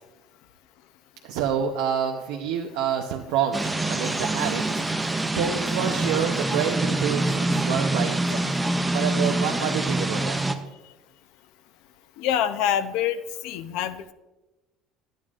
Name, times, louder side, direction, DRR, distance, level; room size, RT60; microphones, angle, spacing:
voice 1, 1.2-3.6 3.9-4.8 5.3-8.5 8.9-10.4, right 8 dB, 80° right, 2 dB, 0.7 m, -28 dB
sound 1, 3.5-10.5, right 2 dB, 5° right, 0.4 m, -25 dB
voice 2, 12.2-13.2 13.4-14.1, left 10 dB, 65° left, 11 dB, 0.5 m, -25 dB
12.0 x 9.2 x 2.5 m, 1.1 s
cardioid pair, 175°, 0 cm